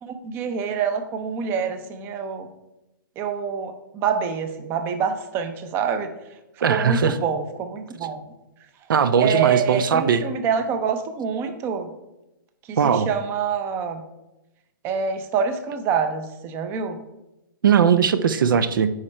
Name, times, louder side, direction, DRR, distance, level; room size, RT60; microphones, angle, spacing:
voice 1, 0.0-2.5 3.2-6.1 6.7-8.2 9.2-11.9 12.7-14.0 14.8-17.0, right 6 dB, 20° right, 8 dB, 0.6 m, -26 dB
voice 2, 6.6-7.2 8.9-10.2 12.8-13.1 17.6-18.9, right 7 dB, 75° right, 13 dB, 0.6 m, -19 dB
9.7 x 4.4 x 4.3 m, 0.94 s
hypercardioid pair, 155°, 11 cm